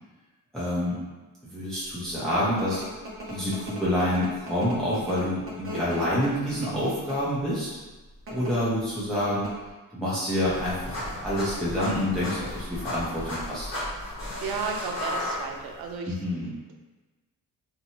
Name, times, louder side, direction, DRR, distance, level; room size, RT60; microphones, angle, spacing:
voice 1, 0.5-1.0 1.5-2.8 3.3-7.8 8.3-9.5 9.9-13.7 16.1-16.6, left 1 dB, ahead, -9 dB, 0.7 m, -27 dB
sound 1, 2.0-7.4 8.1-8.5 8.9-9.0 9.2-9.7, equal, 40° right, 0.7 m, -39 dB
sound 2, 10.4-15.9, left 1 dB, 35° left, 1.1 m, -35 dB
voice 2, 14.4-16.2, right 5 dB, 90° right, 2 dB, 0.5 m, -33 dB
2.8 x 2.2 x 2.9 m, 1.2 s
cardioid pair, 120°, 35 cm